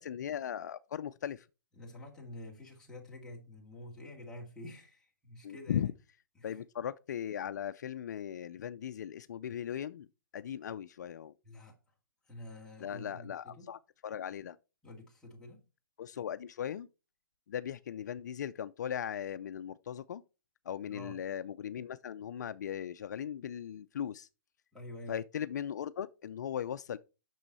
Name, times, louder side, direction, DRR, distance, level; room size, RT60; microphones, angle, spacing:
voice 1, 0.0-1.5 5.4-5.9 6.4-10.1 10.3-11.3 12.8-14.6 16.0-16.9 17.5-20.2 20.7-24.3 25.1-27.0, left 9 dB, 55° left, 0.5 m, -38 dB
voice 2, 1.8-5.9 6.4-6.6 11.4-11.8 12.3-13.7 14.8-15.6 20.8-21.2 24.7-25.2, left 1 dB, 5° left, 2.1 m, -48 dB
9.1 x 6.3 x 4.1 m
hypercardioid pair, 160°, 11 cm